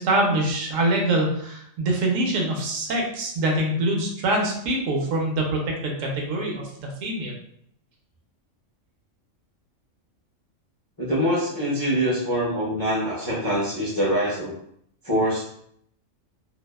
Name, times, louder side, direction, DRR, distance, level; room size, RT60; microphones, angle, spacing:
voice 1, 0.0-7.3, right 1 dB, 85° right, 0 dB, 1.0 m, -24 dB
voice 2, 11.0-14.5 15.0-15.5, equal, 25° left, -7 dB, 0.4 m, -24 dB
2.6 x 2.3 x 2.2 m, 0.69 s
omnidirectional pair, 1.3 m